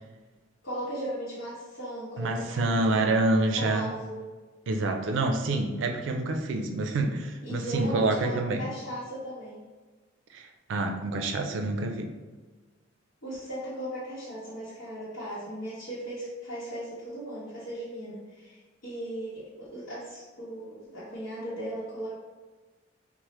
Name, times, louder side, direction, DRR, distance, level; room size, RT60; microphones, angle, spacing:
voice 1, 0.6-3.1 3.6-4.2 7.4-9.6 13.2-22.1, right 1 dB, 90° left, -11 dB, 0.9 m, -37 dB
voice 2, 2.2-3.9 4.7-8.6 10.3-12.1, right 2 dB, 70° right, 5 dB, 0.3 m, -27 dB
3.0 x 2.0 x 3.0 m, 1.3 s
head